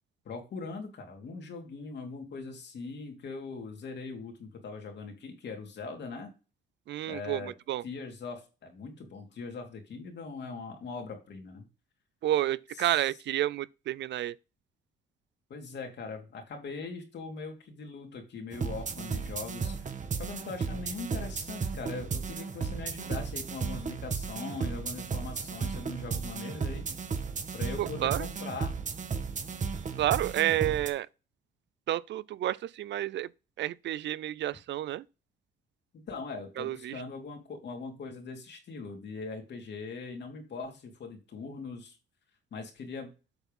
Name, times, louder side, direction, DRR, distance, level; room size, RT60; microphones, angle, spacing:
voice 1, 0.2-6.3 7.1-7.5 7.8-11.7 12.8-12.9 15.5-26.9 27.5-28.7 35.9-42.0 42.5-43.1, left 4 dB, 60° left, 2.9 m, -41 dB
voice 2, 6.9-7.8 12.2-14.3 27.8-28.3 30.0-31.1 31.9-33.3 33.6-35.0 36.6-37.0, right 13 dB, 65° right, 0.4 m, -30 dB
sound 1, 18.5-30.9, right 5 dB, 40° right, 1.3 m, -34 dB
8.0 x 4.6 x 5.4 m
cardioid pair, 90°, 20 cm